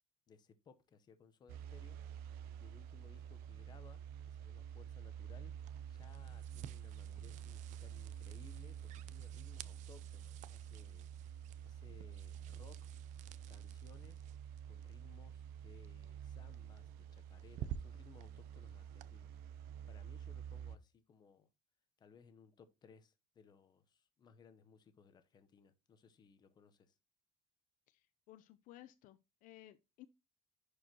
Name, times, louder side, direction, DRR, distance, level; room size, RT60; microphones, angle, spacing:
voice 1, 0.3-2.0 2.6-4.0 4.3-5.5 5.9-12.9 13.5-14.2 14.6-19.3 19.6-21.5 22.0-27.0, left 6 dB, 25° left, 0.9 m, -63 dB
sound 1, 1.5-20.8, right 9 dB, 75° right, 0.8 m, -49 dB
sound 2, 5.6-19.1, right 11 dB, 50° right, 0.5 m, -54 dB
voice 2, 27.9-30.1, left 14 dB, 60° left, 0.6 m, -58 dB
11.0 x 4.8 x 2.9 m
cardioid pair, 180°, 16 cm